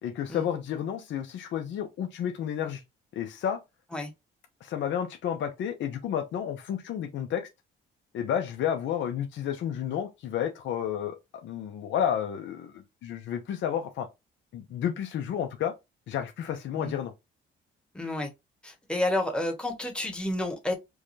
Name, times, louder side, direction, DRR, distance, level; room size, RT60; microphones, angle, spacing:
voice 1, 0.0-2.8 3.1-3.6 4.6-7.5 8.1-14.1 14.5-15.7 16.1-17.1, left 9 dB, 70° left, 0.6 m, -31 dB
voice 2, 17.9-18.3 18.6-20.7, left 1 dB, 5° left, 1.1 m, -30 dB
4.7 x 2.3 x 2.6 m
cardioid pair, 90°, 20 cm